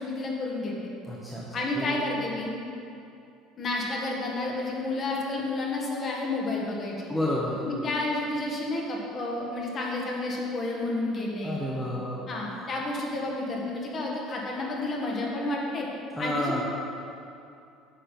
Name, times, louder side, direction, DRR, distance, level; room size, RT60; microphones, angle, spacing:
voice 1, 0.0-0.9 1.5-2.5 3.6-7.1 7.6-11.6 12.3-15.9 16.2-16.6, left 2 dB, 30° left, -2 dB, 1.4 m, -30 dB
voice 2, 1.1-1.5 1.8-2.0 7.1-7.6 11.4-12.3 16.1-16.6, left 1 dB, 5° left, -5 dB, 0.9 m, -30 dB
8.8 x 6.5 x 5.3 m, 2.6 s
cardioid pair, 165°, 0 cm